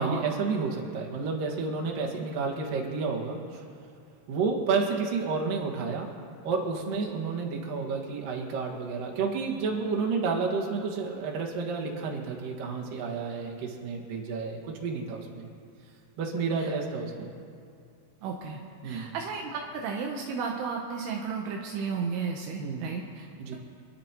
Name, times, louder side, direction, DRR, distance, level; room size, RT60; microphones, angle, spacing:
voice 1, 0.0-3.6 4.3-6.1 6.4-15.5 16.2-17.3 18.8-19.2 22.6-22.9 23.4-23.6, right 4 dB, 60° right, -2 dB, 3.1 m, -30 dB
voice 2, 18.2-23.3, right 5 dB, 80° right, 0 dB, 2.9 m, -33 dB
27.5 x 11.5 x 3.0 m, 2.4 s
omnidirectional pair, 4.7 m